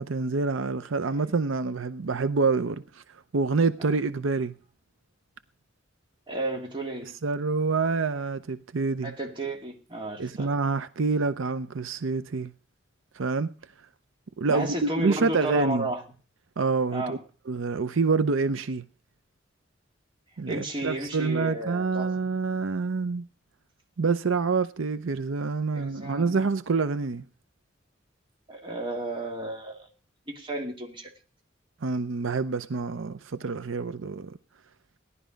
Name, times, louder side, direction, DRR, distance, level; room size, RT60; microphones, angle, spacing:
voice 1, 0.0-3.0 3.3-4.5 7.2-9.1 10.2-12.5 13.1-13.5 14.4-15.9 16.6-17.2 17.5-18.8 20.4-23.3 24.0-27.2 31.8-34.4, right 4 dB, 80° right, 0.6 m, -27 dB
voice 2, 6.3-7.1 9.0-10.5 14.5-16.0 16.9-17.2 20.5-22.1 25.7-26.5 28.5-29.9 30.3-31.1, right 1 dB, 25° right, 2.5 m, -33 dB
17.0 x 11.5 x 5.1 m
head